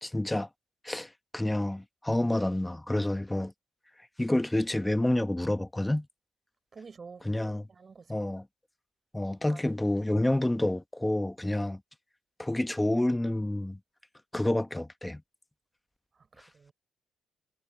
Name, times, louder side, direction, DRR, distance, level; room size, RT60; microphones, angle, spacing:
voice 1, 0.0-0.5 0.8-3.5 4.2-6.1 7.2-7.7 8.1-8.5 9.1-11.8 12.4-13.8 14.3-15.2, left 1 dB, 10° left, 1.0 m, -28 dB
voice 2, 6.7-7.3 7.7-8.1 9.5-9.6 16.2-16.7, right 5 dB, 35° right, 4.3 m, -49 dB
cardioid pair, 90°, 0 cm